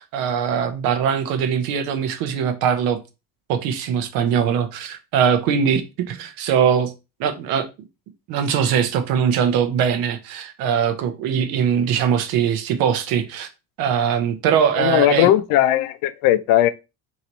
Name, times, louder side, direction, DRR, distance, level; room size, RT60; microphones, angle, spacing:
voice 1, 0.0-3.0 3.5-6.9 7.2-7.7 8.3-13.5 13.8-15.3, right 7 dB, 80° right, 0.9 m, -21 dB
voice 2, 14.8-16.7, left 13 dB, 75° left, 0.5 m, -17 dB
3.0 x 3.0 x 3.9 m
cardioid pair, 175°, 34 cm